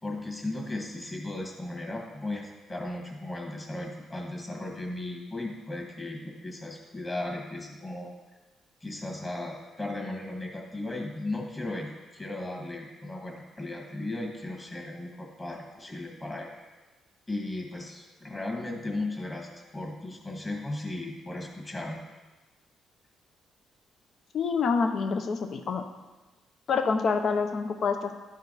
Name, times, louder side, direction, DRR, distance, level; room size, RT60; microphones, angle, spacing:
voice 1, 0.0-8.1 8.8-16.5 17.3-22.0, left 2 dB, 25° left, 0 dB, 1.9 m, -36 dB
voice 2, 24.3-25.8 26.7-28.1, left 5 dB, 55° left, 6 dB, 0.8 m, -27 dB
11.5 x 4.7 x 4.1 m, 1.2 s
cardioid pair, 90°, 0 cm